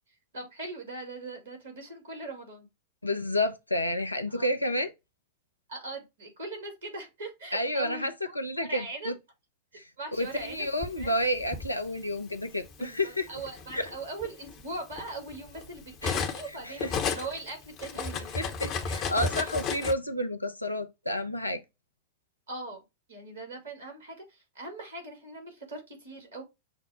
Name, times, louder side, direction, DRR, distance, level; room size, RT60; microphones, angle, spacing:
voice 1, 0.3-2.7 4.3-4.5 5.7-8.4 8.7-9.1 10.0-10.7 11.0-11.1 12.8-18.3 22.5-26.4, right 2 dB, 65° right, 2.0 m, -40 dB
voice 2, 3.0-4.9 7.5-9.1 9.8-13.2 13.7-13.9 16.0-16.1 16.6-16.9 18.3-21.6, left 1 dB, 85° left, 0.6 m, -30 dB
Cutlery silverware, 10.4-11.7 12.6-12.8 13.2-16.5 16.8-19.9, left 5 dB, 35° left, 0.8 m, -33 dB
6.1 x 2.0 x 4.1 m
figure-of-eight pair, 90°, 0 cm